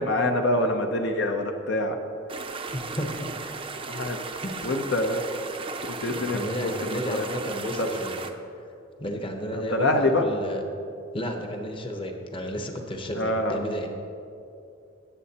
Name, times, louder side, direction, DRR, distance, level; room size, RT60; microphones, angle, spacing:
voice 1, 0.0-2.0 3.9-4.2 4.6-5.2 5.8-7.3 7.8-7.9 9.7-10.2 13.1-13.6, left 1 dB, 60° left, 4 dB, 0.7 m, -25 dB
sound 1, 2.3-8.3, right 4 dB, 25° right, 0.5 m, -36 dB
voice 2, 2.7-3.3 4.4-4.6 6.1-8.1 9.0-10.7 11.1-13.9, equal, 25° left, 3 dB, 0.9 m, -32 dB
17.5 x 8.3 x 2.9 m, 2.7 s
head